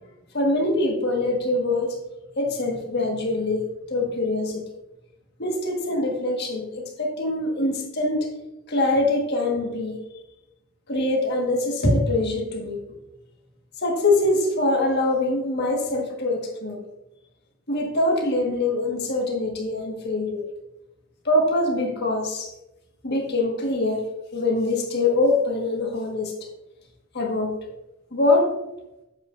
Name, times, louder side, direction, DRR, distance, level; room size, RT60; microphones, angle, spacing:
voice 1, 0.3-2.0 2.4-4.6 5.4-8.3 8.7-10.0 10.9-12.8 13.8-16.8 17.7-20.4 21.2-22.5 23.0-24.0 24.3-26.3 27.1-27.5 28.1-28.5, left 2 dB, 50° left, 0 dB, 1.6 m, -23 dB
8.3 x 8.0 x 2.6 m, 0.89 s
head